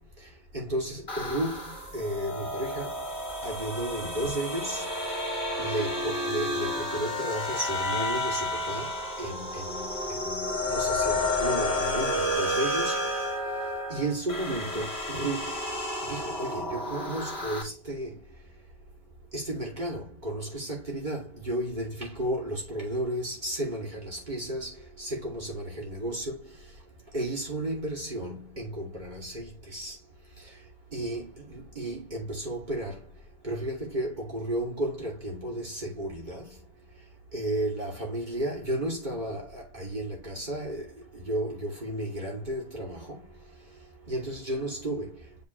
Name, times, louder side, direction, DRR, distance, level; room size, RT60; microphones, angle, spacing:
voice 1, 0.5-3.0 3.4-4.9 5.6-13.1 13.9-15.6 16.0-18.2 19.3-26.6 27.1-30.0 30.4-30.5 30.9-33.1 33.4-36.6 37.3-43.3 44.1-45.2, right 1 dB, 35° right, 2.7 m, -33 dB
sound 1, 1.1-17.6, left 1 dB, 40° left, 2.4 m, -31 dB
7.9 x 4.0 x 3.1 m
omnidirectional pair, 1.3 m